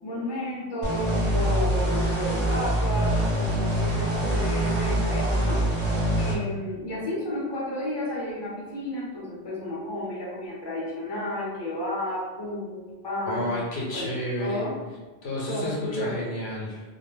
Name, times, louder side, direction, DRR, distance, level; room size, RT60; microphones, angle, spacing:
voice 1, 0.0-5.6 6.2-13.5 13.9-14.1 14.4-14.7 15.5-16.2, left 1 dB, 25° left, -6 dB, 0.8 m, -32 dB
sound 1, 0.8-6.3, right 1 dB, 45° right, 0.7 m, -24 dB
voice 2, 13.3-14.7 15.2-16.8, left 1 dB, 80° left, -4 dB, 1.0 m, -30 dB
2.3 x 2.1 x 3.2 m, 1.3 s
omnidirectional pair, 1.1 m